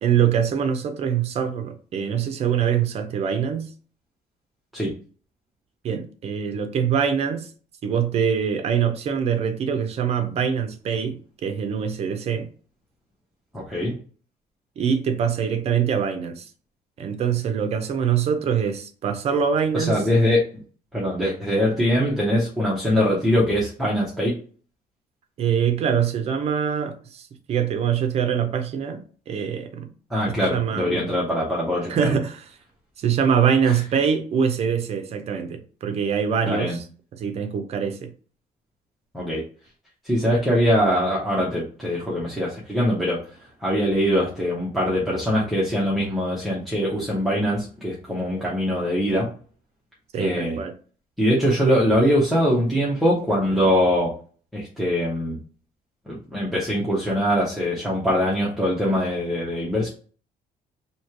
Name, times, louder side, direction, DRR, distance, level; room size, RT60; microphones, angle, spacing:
voice 1, 0.0-3.7 5.8-7.5 7.8-12.5 14.8-16.5 17.0-20.0 25.4-29.9 30.5-31.0 31.9-32.4 33.0-36.8 37.1-38.1 50.1-50.7, right 7 dB, 40° right, 0.6 m, -24 dB
voice 2, 13.5-13.9 19.7-20.4 20.9-24.3 30.1-32.1 33.7-33.8 36.5-36.8 39.1-39.4 40.0-43.2 43.6-49.3 50.2-50.6 51.2-54.1 54.5-55.4 56.1-59.9, equal, ahead, 0.8 m, -22 dB
3.1 x 2.8 x 4.4 m
cardioid pair, 175°, 16 cm